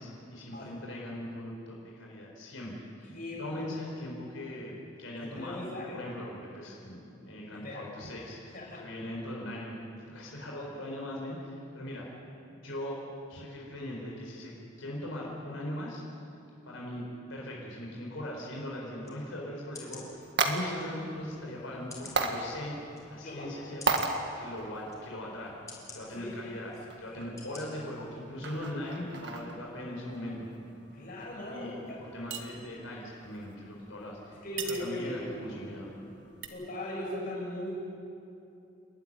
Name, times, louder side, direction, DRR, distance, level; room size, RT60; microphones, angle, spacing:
voice 1, 0.0-2.7 3.0-5.6 5.9-9.7 10.1-12.1 12.6-13.0 13.3-14.5 14.8-16.0 16.7-17.0 17.3-22.7 23.1-25.5 25.9-26.7 27.0-30.5 31.5-34.4 34.6-35.9, left 1 dB, 80° left, -2 dB, 4.6 m, -40 dB
voice 2, 3.0-3.7 5.2-6.0 7.5-7.9 8.5-8.9 23.2-23.6 26.1-26.8 27.1-27.3 30.9-32.0 34.3-35.8 36.4-37.8, left 1 dB, 45° left, -3 dB, 7.2 m, -39 dB
sound 1, 19.0-19.2 19.7-20.1 20.8-20.9 21.9-22.2 22.9-23.0 23.8-24.1 24.9-25.0 25.7-26.0 26.7-26.8 27.4-27.6 28.1-28.2, left 4 dB, 15° left, 4.3 m, -46 dB
sound 2, 19.7-36.5, right 3 dB, 60° right, 1.9 m, -38 dB
29.0 x 13.0 x 10.0 m, 2.7 s
head